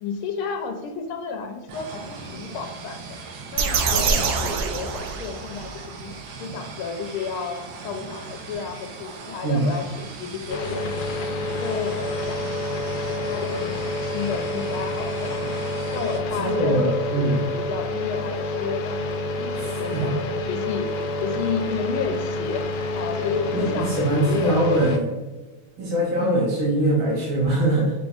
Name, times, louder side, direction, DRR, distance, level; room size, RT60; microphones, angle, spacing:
voice 1, 0.0-3.2 3.5-11.9 12.3-15.6 15.9-24.8 26.2-26.4, left 5 dB, 90° left, 5 dB, 1.5 m, -32 dB
sound 1, 1.7-16.2, right 4 dB, 70° right, 1.2 m, -39 dB
sound 2, 3.6-5.7, right 5 dB, 90° right, 0.8 m, -24 dB
sound 3, 10.5-25.0, left 2 dB, 75° left, 1.1 m, -28 dB
voice 2, 16.4-17.4 19.5-20.2 23.5-25.2 25.8-27.9, right 1 dB, 50° right, -5 dB, 1.1 m, -22 dB
5.1 x 3.2 x 2.4 m, 1.2 s
omnidirectional pair, 2.3 m